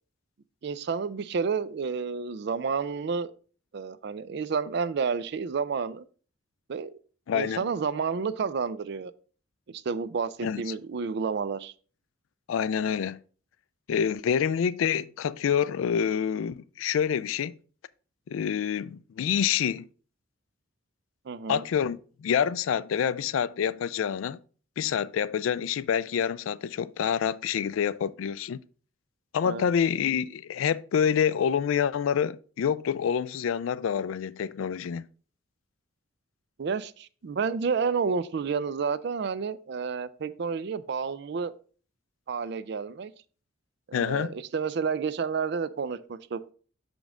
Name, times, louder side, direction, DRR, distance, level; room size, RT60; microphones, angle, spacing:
voice 1, 0.6-3.3 3.7-6.0 6.7-6.9 7.3-9.1 9.7-11.7 21.3-21.6 29.4-29.7 36.6-41.5 42.3-43.1 43.9-46.4, right 5 dB, 55° right, 0.4 m, -30 dB
voice 2, 7.3-7.7 10.4-10.6 12.5-13.2 13.9-17.6 18.3-19.9 21.5-24.4 24.8-28.6 29.3-35.1 43.9-44.3, left 8 dB, 85° left, 0.3 m, -27 dB
6.2 x 5.2 x 3.6 m
head